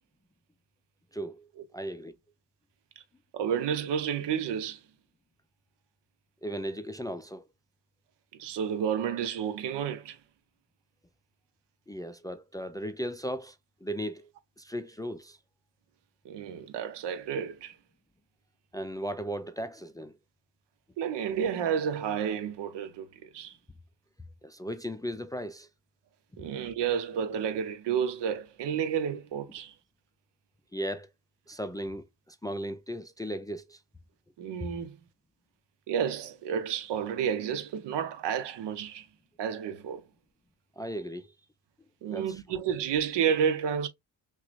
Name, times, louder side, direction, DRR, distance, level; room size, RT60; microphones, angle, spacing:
voice 1, 1.1-1.5 1.7-2.1 6.4-7.4 11.9-13.6 13.8-14.3 14.6-15.4 18.7-20.1 24.4-25.7 30.7-31.1 31.5-33.8 34.6-34.7 40.8-41.3 42.1-42.4, equal, 10° left, 0.5 m, -36 dB
voice 2, 3.3-4.8 8.4-10.2 16.2-17.8 21.0-23.6 26.4-29.7 34.4-35.0 35.9-39.1 39.4-40.0 42.0-43.9, right 8 dB, 65° right, 0.8 m, -31 dB
5.8 x 2.3 x 2.5 m
hypercardioid pair, 50°, 46 cm